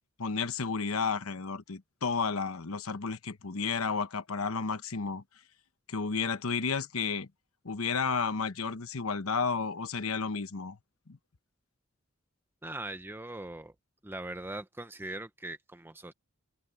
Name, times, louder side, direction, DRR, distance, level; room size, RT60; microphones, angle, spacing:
voice 1, 0.2-5.2 5.9-7.3 7.6-10.8 11.1-11.2, left 5 dB, 80° left, 1.1 m, -32 dB
voice 2, 12.6-13.7 14.0-16.1, right 2 dB, 10° right, 0.8 m, -40 dB
head